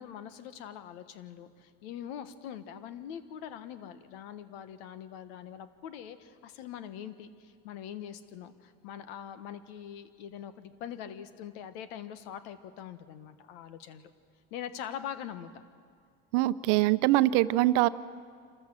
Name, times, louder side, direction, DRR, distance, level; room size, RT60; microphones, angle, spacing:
voice 1, 0.0-14.1 14.5-15.6, left 9 dB, 90° left, 11 dB, 1.3 m, -43 dB
voice 2, 16.3-17.9, right 16 dB, 80° right, 15 dB, 0.7 m, -23 dB
27.0 x 14.0 x 7.6 m, 2.1 s
supercardioid pair, 115°, 30 cm